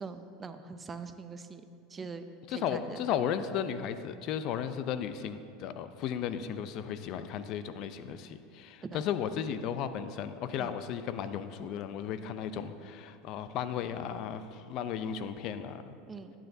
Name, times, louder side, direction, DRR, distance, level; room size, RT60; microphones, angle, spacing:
voice 1, 0.0-1.6 1.9-3.0 8.8-9.0 10.6-10.7 16.1-16.3, right 4 dB, 20° right, 9 dB, 0.5 m, -43 dB
voice 2, 2.5-15.9, left 8 dB, 55° left, 11 dB, 0.5 m, -35 dB
12.0 x 9.0 x 2.7 m, 2.5 s
supercardioid pair, 115°, 0 cm